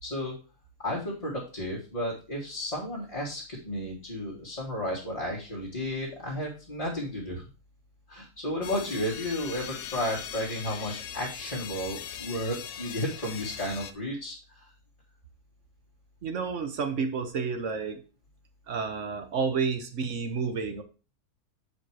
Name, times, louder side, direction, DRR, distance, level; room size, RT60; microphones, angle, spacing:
voice 1, 0.0-0.3 0.8-7.4 8.1-14.3, left 1 dB, 25° left, -6 dB, 2.0 m, -33 dB
sound 1, 8.6-13.9, left 9 dB, 70° left, 1.2 m, -40 dB
voice 2, 16.2-18.0 18.7-20.8, right 5 dB, 55° right, 8 dB, 1.2 m, -30 dB
7.1 x 5.2 x 4.7 m, 0.33 s
omnidirectional pair, 1.6 m